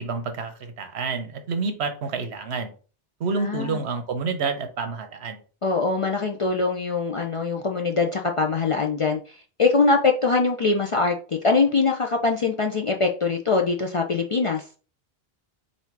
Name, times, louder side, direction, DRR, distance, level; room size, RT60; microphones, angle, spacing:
voice 1, 0.0-2.7 3.2-5.4, right 4 dB, 90° right, 1.1 m, -28 dB
voice 2, 3.4-3.8 5.6-14.6, left 4 dB, 50° left, 0.4 m, -23 dB
4.2 x 2.6 x 4.6 m
omnidirectional pair, 1.1 m